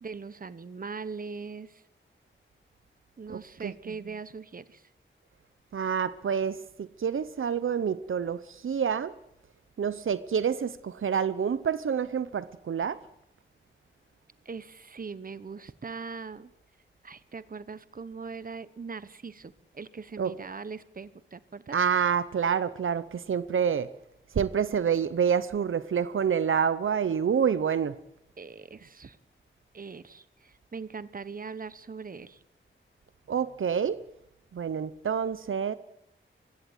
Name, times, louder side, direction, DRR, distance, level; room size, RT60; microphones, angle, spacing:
voice 1, 0.0-1.8 3.2-4.9 14.4-16.5 17.0-21.8 28.4-29.2 29.7-32.4, right 5 dB, 45° right, 1.0 m, -41 dB
voice 2, 3.3-3.7 5.7-9.1 9.8-13.0 20.2-20.3 21.7-23.9 24.3-28.0 33.3-34.0 34.5-35.7, right 7 dB, 80° right, 0.8 m, -27 dB
23.0 x 16.5 x 9.2 m
wide cardioid pair, 125°, 20 cm